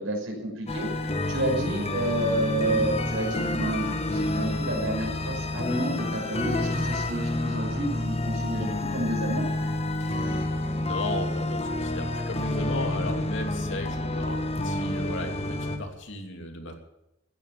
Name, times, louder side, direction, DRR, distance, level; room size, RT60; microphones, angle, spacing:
voice 1, 0.0-9.5, right 1 dB, 70° right, 2 dB, 5.8 m, -30 dB
sound 1, 0.7-15.8, left 1 dB, 30° left, 1.5 m, -29 dB
voice 2, 10.0-10.5 10.7-16.7, left 1 dB, 60° left, 3 dB, 2.8 m, -36 dB
15.5 x 10.5 x 7.3 m, 0.87 s
head